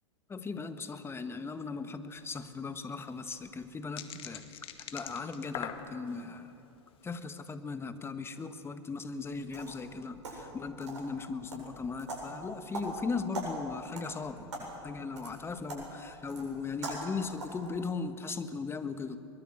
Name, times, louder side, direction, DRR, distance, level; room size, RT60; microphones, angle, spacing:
voice 1, 0.3-6.5 7.0-19.2, left 4 dB, 15° left, 10 dB, 1.5 m, -38 dB
sound 1, 2.2-2.3 2.5-2.6 3.0-6.3 6.8-7.1, left 10 dB, 35° left, 1.9 m, -43 dB
sound 2, 9.2-17.7, right 1 dB, 80° right, 7.9 m, -43 dB
23.5 x 21.5 x 8.1 m, 2.9 s
hypercardioid pair, 100°, 15 cm